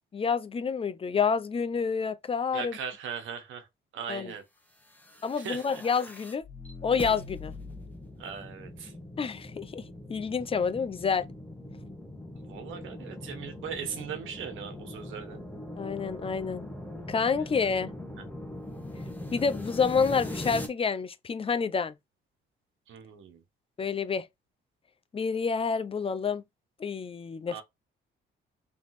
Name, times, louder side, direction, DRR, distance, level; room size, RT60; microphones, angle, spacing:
voice 1, 0.1-2.7 4.1-4.3 5.2-6.4 6.8-7.5 9.2-11.3 15.8-16.7 17.1-17.9 19.3-21.9 23.8-24.3 25.1-26.4 26.8-27.6, left 5 dB, 30° left, 0.6 m, -28 dB
voice 2, 2.5-3.7 3.9-4.4 5.4-5.8 8.2-8.9 12.3-15.4 17.4-17.5 18.2-18.3 22.9-23.4 27.5-27.6, right 7 dB, 80° right, 1.3 m, -39 dB
sound 1, 4.9-20.7, left 1 dB, 10° left, 1.2 m, -41 dB
3.5 x 3.0 x 4.1 m
cardioid pair, 90°, 20 cm